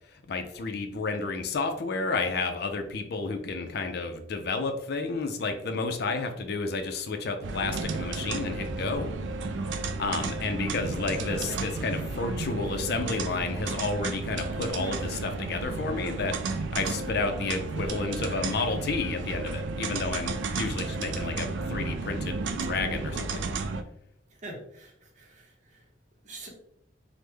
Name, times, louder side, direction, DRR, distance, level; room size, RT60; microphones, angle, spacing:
voice 1, 0.3-9.1 9.7-23.5, left 3 dB, 60° left, 6 dB, 0.4 m, -31 dB
sound 1, 7.4-23.8, right 3 dB, 70° right, 0.3 m, -33 dB
voice 2, 24.4-25.8 26.2-26.5, right 2 dB, 40° right, 0 dB, 0.8 m, -45 dB
3.3 x 2.1 x 3.3 m, 0.72 s
head